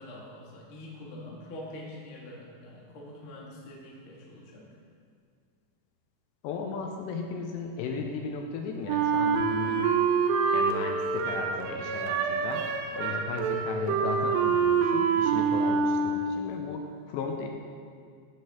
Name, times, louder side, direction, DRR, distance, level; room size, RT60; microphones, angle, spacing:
voice 1, 0.0-4.7, left 1 dB, 55° left, -4 dB, 1.4 m, -44 dB
voice 2, 6.4-9.9 10.5-12.7 12.9-17.5, left 4 dB, 85° left, 2 dB, 2.8 m, -36 dB
Wind instrument woodwind instrument, 8.9-16.4, right 5 dB, 85° right, 2.6 m, -26 dB
14.5 x 6.8 x 3.6 m, 2.2 s
omnidirectional pair, 5.2 m